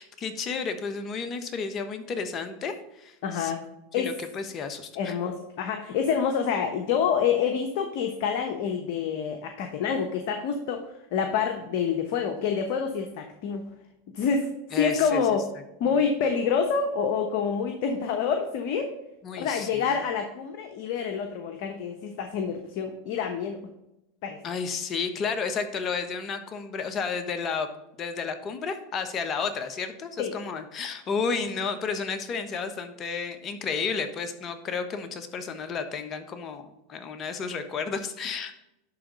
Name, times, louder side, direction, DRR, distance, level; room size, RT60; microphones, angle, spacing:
voice 1, 0.0-3.5 4.0-5.2 14.7-15.2 15.9-16.0 19.2-20.0 24.4-27.7 28.0-36.6 36.9-38.5, left 5 dB, 35° left, 8 dB, 1.2 m, -32 dB
voice 2, 3.2-3.6 3.9-4.1 4.9-10.8 11.1-13.7 14.1-15.5 15.8-18.9 19.4-23.6 24.2-24.4 30.2-30.3, left 6 dB, 60° left, 5 dB, 1.0 m, -27 dB
11.0 x 3.8 x 5.3 m, 0.89 s
hypercardioid pair, 110°, 0 cm